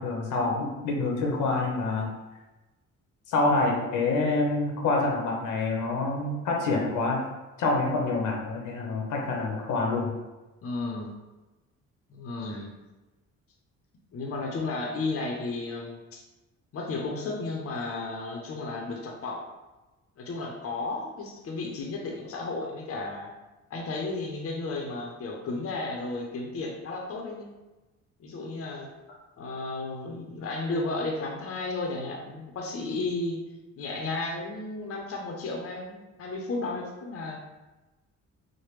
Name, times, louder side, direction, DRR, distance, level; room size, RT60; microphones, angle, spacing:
voice 1, 0.0-2.1 3.3-7.2 7.6-10.2, left 3 dB, 80° left, -1 dB, 0.8 m, -27 dB
voice 2, 10.6-11.1 12.1-12.7 14.1-16.2 16.7-19.5 20.2-23.3 23.7-27.5 28.2-28.9 29.4-33.4 33.8-37.4, left 3 dB, 50° left, 0 dB, 0.6 m, -33 dB
3.3 x 2.1 x 3.1 m, 1.1 s
cardioid pair, 90°, 30 cm